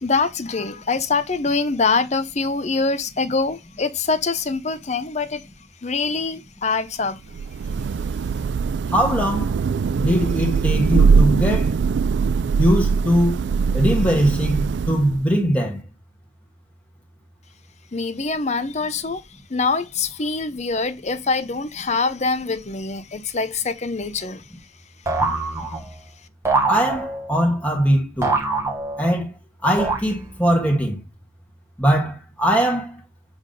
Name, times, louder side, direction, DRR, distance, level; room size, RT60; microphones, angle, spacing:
voice 1, 0.0-5.4 5.8-7.2 17.9-19.2 19.5-24.4, left 4 dB, 35° left, 0.7 m, -24 dB
Thunder / Rain, 7.3-15.3, right 5 dB, 60° right, 0.3 m, -21 dB
voice 2, 8.9-9.5 9.9-11.8 12.6-13.4 13.7-15.8 26.7-28.4 29.0-29.3 29.6-31.0 31.8-33.0, equal, 10° left, 1.6 m, -21 dB
sound 1, 25.1-26.0 26.4-27.4 28.2-29.2 29.8-30.5, right 3 dB, 15° right, 1.4 m, -24 dB
7.6 x 3.6 x 5.2 m
head